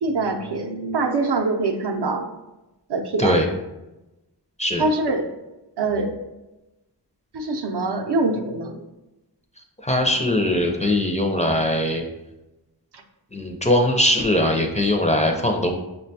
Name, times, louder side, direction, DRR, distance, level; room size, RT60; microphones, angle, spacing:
voice 1, 0.0-2.3 2.9-3.4 4.8-5.3 5.8-6.2 7.3-8.8 10.1-10.2, right 3 dB, 70° right, 4 dB, 0.6 m, -24 dB
voice 2, 9.8-12.0 13.3-15.7, left 1 dB, 15° left, 1 dB, 0.4 m, -20 dB
5.7 x 2.2 x 2.6 m, 0.98 s
wide cardioid pair, 95°, 43 cm